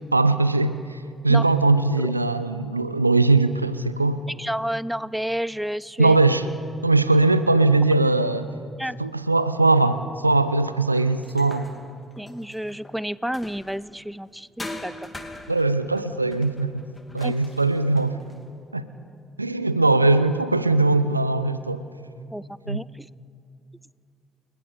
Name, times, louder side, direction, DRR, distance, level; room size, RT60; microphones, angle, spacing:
voice 1, 0.1-4.2 6.0-6.4 6.8-8.5 9.0-11.7 15.5-16.8 17.1-18.2 18.7-18.9 19.4-21.8 22.7-22.8, right 3 dB, 90° right, 14 dB, 0.5 m, -20 dB
voice 2, 4.4-6.2 8.8-9.0 12.2-14.9 17.2-17.3 22.3-23.1, equal, 5° right, 21 dB, 0.5 m, -30 dB
sound 1, 10.9-14.0 14.6-18.5, left 2 dB, 20° left, 3.0 m, -42 dB
29.0 x 20.5 x 5.1 m, 2.5 s
figure-of-eight pair, 45°, 0 cm